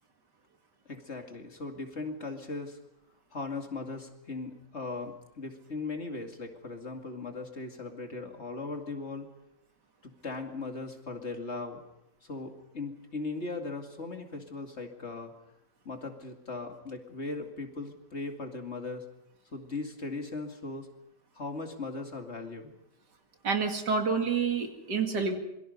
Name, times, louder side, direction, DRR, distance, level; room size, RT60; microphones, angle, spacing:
voice 1, 0.9-2.8 3.3-9.3 10.0-11.8 12.2-15.3 15.8-19.1 19.5-20.9 21.3-22.8, left 3 dB, 40° left, 4 dB, 2.6 m, -38 dB
voice 2, 23.4-25.4, right 5 dB, 80° right, 5 dB, 2.9 m, -28 dB
27.0 x 23.0 x 5.4 m, 0.87 s
omnidirectional pair, 1.8 m